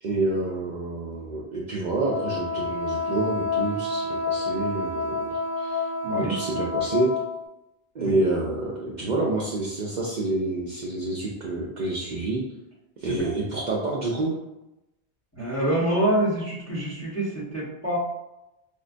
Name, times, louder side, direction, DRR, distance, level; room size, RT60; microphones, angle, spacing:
voice 1, 0.0-7.1 7.9-12.4 13.0-14.3, right 2 dB, 55° right, -4 dB, 0.5 m, -28 dB
Wind instrument woodwind instrument, 2.1-7.3, left 3 dB, 65° left, 0.8 m, -28 dB
voice 2, 6.0-6.3 8.0-8.2 13.0-13.3 15.3-18.0, right 1 dB, 15° left, -7 dB, 0.8 m, -26 dB
5.0 x 2.1 x 2.5 m, 0.94 s
omnidirectional pair, 1.1 m